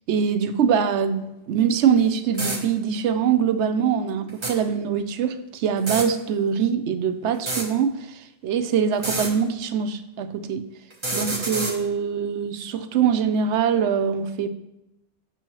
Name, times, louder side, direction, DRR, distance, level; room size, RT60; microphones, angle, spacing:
voice 1, 0.1-10.6 11.1-14.5, right 7 dB, 90° right, 9 dB, 0.9 m, -23 dB
sound 1, 2.0-2.1 2.3-2.6 4.3-4.5 5.8-6.1 7.3-7.7 8.9-9.3 10.9-11.7, right 2 dB, 25° right, 1.0 m, -27 dB
7.0 x 6.1 x 3.0 m, 0.91 s
omnidirectional pair, 1.1 m